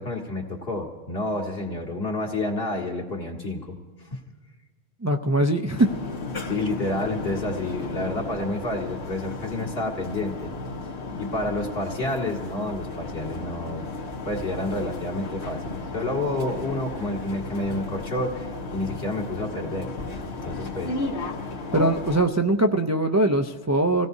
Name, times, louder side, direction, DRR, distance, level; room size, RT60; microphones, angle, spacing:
voice 1, 0.0-3.8 4.1-4.2 6.5-10.5 11.2-13.9 14.2-19.9 20.3-21.0, left 2 dB, 65° left, -1 dB, 2.2 m, -29 dB
voice 2, 5.0-5.9 21.7-24.1, right 1 dB, 25° right, 3 dB, 0.3 m, -21 dB
sound 1, 5.7-22.2, left 3 dB, 85° left, 1.6 m, -34 dB
27.5 x 17.0 x 2.7 m, 1.4 s
omnidirectional pair, 1.1 m